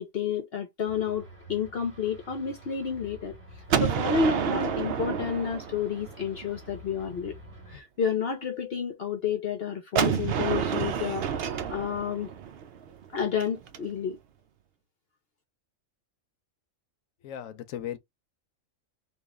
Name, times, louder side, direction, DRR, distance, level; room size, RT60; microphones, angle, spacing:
voice 1, 0.0-3.3 3.7-7.3 7.7-12.3 13.1-14.2, left 7 dB, 55° left, 0.8 m, -30 dB
sound 1, 0.9-7.8, right 1 dB, 40° right, 1.8 m, -48 dB
Gunshot gunfire, 3.7-6.5 10.0-13.8, right 7 dB, 60° right, 0.7 m, -29 dB
voice 2, 17.2-18.0, left 10 dB, 80° left, 1.0 m, -36 dB
3.2 x 2.5 x 3.5 m
omnidirectional pair, 1.4 m